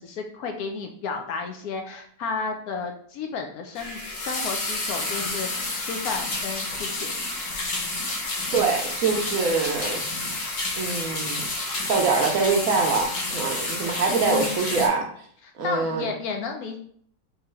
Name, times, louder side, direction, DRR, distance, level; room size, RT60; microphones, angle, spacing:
voice 1, 0.0-7.1 14.1-14.8 15.6-16.8, left 5 dB, 70° left, 4 dB, 1.0 m, -32 dB
sound 1, 3.7-14.9, left 2 dB, 55° left, 1.2 m, -30 dB
voice 2, 8.5-10.0 10.8-11.4 11.9-15.1 15.6-16.1, right 4 dB, 65° right, 2 dB, 0.9 m, -24 dB
3.7 x 2.7 x 4.3 m, 0.62 s
omnidirectional pair, 1.8 m